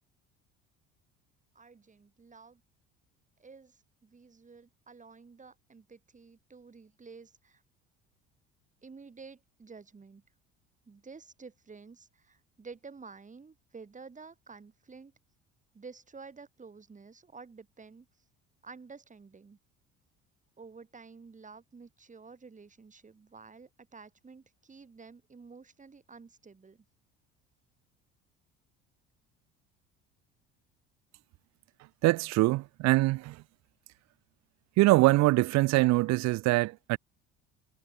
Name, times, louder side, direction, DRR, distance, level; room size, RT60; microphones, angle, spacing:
voice 1, 1.5-2.6 3.4-7.6 8.8-10.2 10.8-15.1 15.7-18.1 18.6-19.6 20.6-26.9, right 4 dB, 25° right, 6.5 m, -51 dB
voice 2, 32.0-33.4 34.8-37.0, right 20 dB, 65° right, 0.8 m, -24 dB
supercardioid pair, 80°, 29 cm